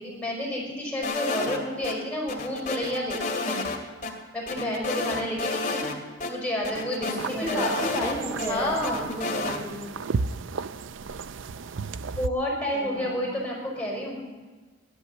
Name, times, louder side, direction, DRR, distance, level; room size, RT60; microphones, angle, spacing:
voice 1, 0.0-3.7 4.3-5.8 6.2-7.7 8.5-9.1 12.1-14.2, left 1 dB, 5° left, -3 dB, 5.4 m, -30 dB
sound 1, 1.0-1.9 2.3-3.8 4.0-4.1 4.5-6.0 6.2-6.3 6.6-8.5 8.8-9.6, left 3 dB, 45° left, 2.3 m, -30 dB
voice 2, 7.0-9.9 12.7-13.3, equal, 15° right, -4 dB, 4.2 m, -32 dB
sound 2, 7.2-12.3, right 4 dB, 85° right, 0.5 m, -34 dB
16.5 x 11.5 x 6.9 m, 1.3 s
head